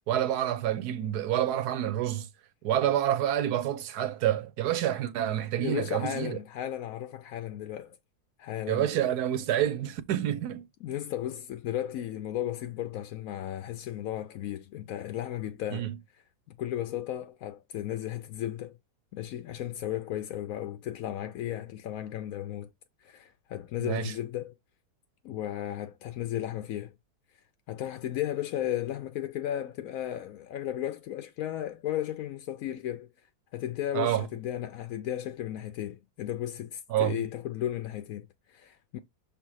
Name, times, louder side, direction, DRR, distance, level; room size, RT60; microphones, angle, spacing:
voice 1, 0.1-2.3 2.6-6.4 8.7-10.7 15.7-16.0 23.8-24.1 33.9-34.3 36.9-37.2, right 11 dB, 80° right, 1.3 m, -28 dB
voice 2, 5.6-8.0 8.4-8.9 10.8-15.9 16.5-18.8 19.1-22.7 23.0-24.5 25.2-26.9 27.3-33.1 33.5-39.0, left 12 dB, 70° left, 0.9 m, -35 dB
6.7 x 3.4 x 4.8 m
omnidirectional pair, 1.7 m